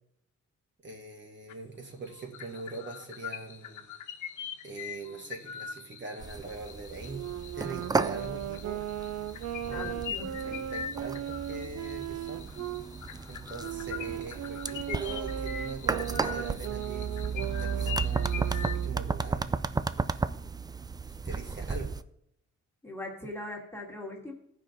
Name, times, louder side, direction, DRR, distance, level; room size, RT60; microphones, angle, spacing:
voice 1, 0.8-3.9 4.6-7.2 7.5-8.8 9.6-10.0 10.4-12.4 13.3-19.5 21.1-21.9, right 3 dB, 40° right, 2 dB, 1.8 m, -42 dB
sound 1, 1.5-1.8 2.1-18.9, left 8 dB, 75° left, 1.0 m, -43 dB
sound 2, 6.2-22.0, right 4 dB, 15° right, 0.3 m, -34 dB
Wind instrument woodwind instrument, 7.0-12.8 13.6-19.0, right 11 dB, 60° right, 0.6 m, -37 dB
voice 2, 9.7-10.6 22.8-24.3, left 2 dB, 10° left, -2 dB, 1.9 m, -40 dB
15.0 x 5.2 x 3.9 m, 0.72 s
cardioid pair, 80°, 30 cm